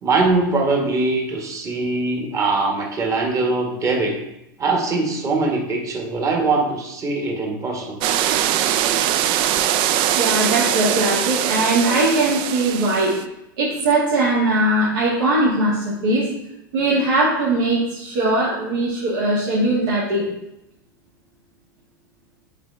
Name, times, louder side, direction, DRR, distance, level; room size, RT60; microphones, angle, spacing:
voice 1, 0.0-4.1 4.6-8.0, right 3 dB, 25° right, 1 dB, 1.5 m, -22 dB
sound 1, 8.0-13.2, right 11 dB, 45° right, 0.4 m, -21 dB
voice 2, 10.1-13.2 13.6-16.3 16.7-20.3, right 2 dB, 70° right, -7 dB, 1.8 m, -20 dB
7.7 x 4.0 x 3.4 m, 0.85 s
hypercardioid pair, 105°, 12 cm